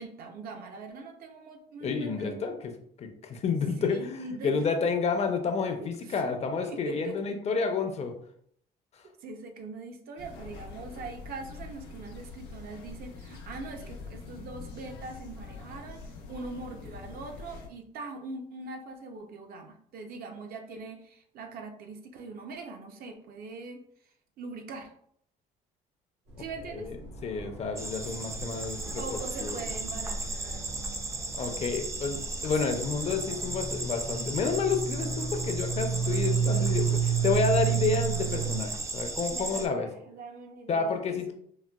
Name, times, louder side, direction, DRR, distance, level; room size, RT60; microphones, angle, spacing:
voice 1, 0.0-2.4 3.8-4.5 5.8-6.2 6.7-7.3 9.2-16.0 16.3-23.8 24.4-24.9 26.4-26.9 29.0-30.6 30.9-31.5 39.3-41.3, right 3 dB, 60° right, 4 dB, 0.6 m, -42 dB
voice 2, 1.8-2.7 3.0-8.1 8.9-9.0 26.7-29.6 31.3-39.9 40.7-41.3, left 5 dB, 40° left, 5 dB, 0.5 m, -30 dB
sound 1, 10.2-17.7, left 3 dB, 85° left, 0.6 m, -44 dB
sound 2, 26.3-38.6, right 7 dB, 90° right, 1.2 m, -33 dB
sound 3, 27.8-39.7, right 2 dB, 15° right, 0.4 m, -36 dB
4.0 x 2.2 x 2.2 m, 0.66 s
cardioid pair, 110°, 17 cm